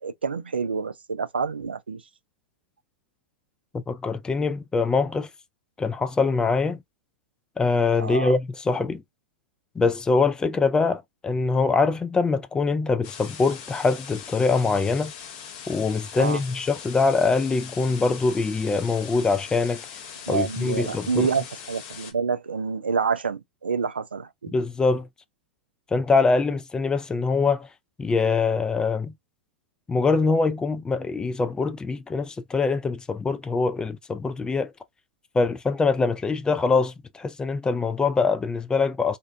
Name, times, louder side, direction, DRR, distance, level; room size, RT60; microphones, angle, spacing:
voice 1, 0.0-2.0 8.0-8.3 16.2-16.4 20.3-24.5, right 5 dB, 90° right, 0.3 m, -28 dB
voice 2, 3.7-5.3 5.8-6.8 7.6-9.0 9.8-15.1 15.7-19.8 20.3-21.3 24.5-25.1 25.9-27.7 28.0-29.1 29.9-34.7 35.3-39.2, left 4 dB, 15° left, 0.4 m, -23 dB
sound 1, 13.0-22.1, left 7 dB, 50° left, 0.7 m, -41 dB
2.5 x 2.2 x 2.4 m
hypercardioid pair, 100°, 5 cm